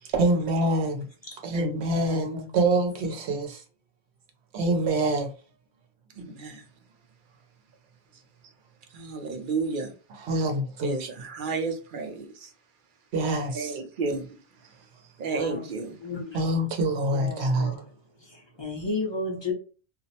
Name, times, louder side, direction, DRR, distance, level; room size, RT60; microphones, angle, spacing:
voice 1, 0.0-1.1 1.4-3.6 4.5-5.3 6.2-6.3 10.1-11.1 13.1-13.8 16.3-17.7, right 2 dB, 85° right, 0.9 m, -26 dB
voice 2, 1.9-2.5 15.3-15.6 16.0-16.4 17.1-17.9 18.2-19.5, left 3 dB, 30° left, 0.6 m, -34 dB
voice 3, 6.2-6.6 8.9-9.9 10.8-12.5 13.5-14.4 15.2-16.0, right 4 dB, 60° right, 0.7 m, -32 dB
2.4 x 2.0 x 2.7 m
omnidirectional pair, 1.1 m